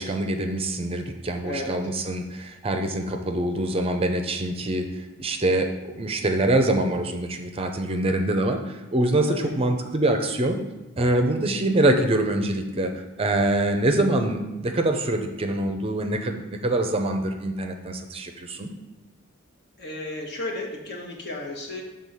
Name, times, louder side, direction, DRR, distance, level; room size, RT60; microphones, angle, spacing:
voice 1, 0.0-4.9 5.2-10.6 11.0-12.9 13.2-18.7, right 1 dB, 30° right, 5 dB, 0.5 m, -24 dB
voice 2, 19.8-21.8, left 2 dB, 55° left, 0 dB, 1.3 m, -33 dB
6.5 x 3.8 x 5.5 m, 1.1 s
head